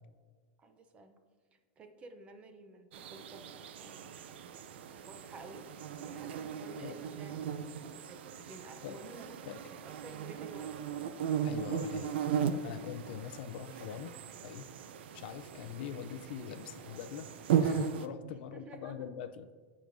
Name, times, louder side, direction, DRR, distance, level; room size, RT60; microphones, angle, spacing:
voice 1, 0.6-1.2 1.5-3.5 3.8-4.2 5.0-5.7 6.0-10.9 18.5-19.1, right 3 dB, 20° right, 7 dB, 0.6 m, -52 dB
sound 1, 2.9-18.1, right 8 dB, 80° right, 0.5 m, -37 dB
voice 2, 11.4-12.2 12.6-14.1 14.4-14.7 15.1-17.3 17.6-19.5, left 9 dB, 65° left, 12 dB, 0.5 m, -43 dB
14.0 x 5.0 x 2.6 m, 1.5 s
supercardioid pair, 155°, 6 cm